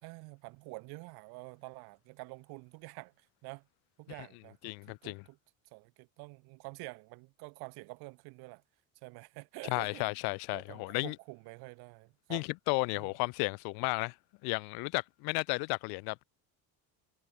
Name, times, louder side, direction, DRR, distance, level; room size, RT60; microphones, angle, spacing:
voice 1, 0.0-3.7 4.0-5.4 5.7-8.6 9.0-10.1 10.5-12.4 12.9-13.1, right 27 dB, 70° right, 2.9 m, -48 dB
voice 2, 4.6-5.2 9.7-11.1 12.3-14.1 14.4-16.2, left 31 dB, 70° left, 0.7 m, -33 dB
cardioid pair, 165°, 39 cm